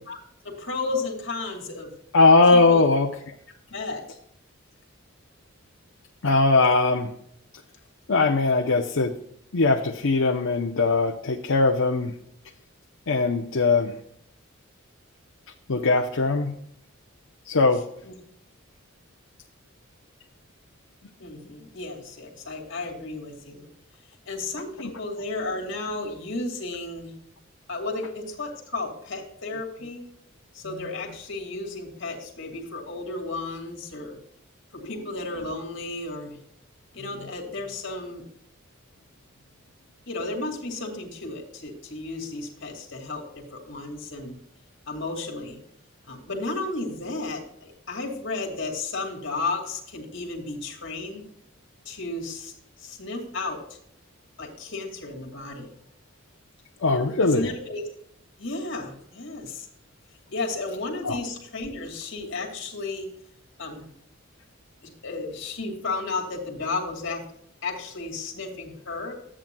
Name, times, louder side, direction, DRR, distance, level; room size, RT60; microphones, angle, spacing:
voice 1, 0.4-1.9 2.5-2.8 3.7-4.2 18.0-18.1 21.2-23.7 24.3-27.2 27.7-30.0 30.5-34.2 34.7-36.4 36.9-38.2 40.1-44.4 44.9-45.6 46.1-51.2 51.8-52.5 52.8-53.8 54.4-55.7 57.2-57.8 58.4-59.7 60.3-63.1 63.6-63.9 64.8-67.2 67.6-69.1, left 3 dB, 65° left, 1 dB, 2.6 m, -33 dB
voice 2, 2.1-3.1 6.2-7.1 8.1-9.1 9.5-12.1 13.1-14.0 15.7-16.5 17.5-17.8 56.8-57.5 61.0-61.2, left 3 dB, 80° left, 1 dB, 0.8 m, -20 dB
13.5 x 8.8 x 2.3 m, 0.69 s
head